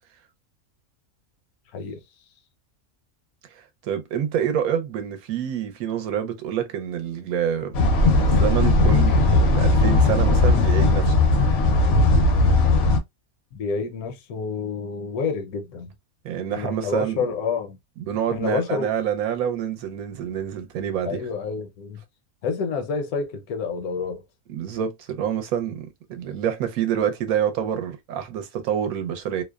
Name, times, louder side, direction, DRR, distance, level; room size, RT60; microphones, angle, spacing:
voice 1, 3.6-7.8 8.2-11.2 16.2-17.2 18.0-21.2 24.5-29.4, right 9 dB, 75° right, 1.0 m, -27 dB
sound 1, 7.7-13.0, left 2 dB, 60° left, 0.7 m, -18 dB
voice 2, 13.5-15.9 16.5-17.8 18.3-18.9 21.0-22.0 22.4-24.2, left 5 dB, 80° left, 1.1 m, -28 dB
2.7 x 2.0 x 2.2 m
omnidirectional pair, 1.6 m